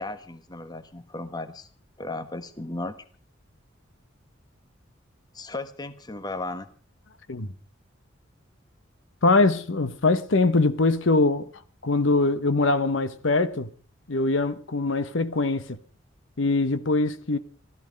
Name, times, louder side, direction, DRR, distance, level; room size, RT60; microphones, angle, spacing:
voice 1, 0.0-1.7 2.0-2.9 5.3-6.7, left 2 dB, 20° left, 1.3 m, -35 dB
voice 2, 9.2-11.5 11.8-13.7 14.1-15.8 16.4-17.4, left 3 dB, 70° left, 1.0 m, -22 dB
16.5 x 13.5 x 5.2 m
head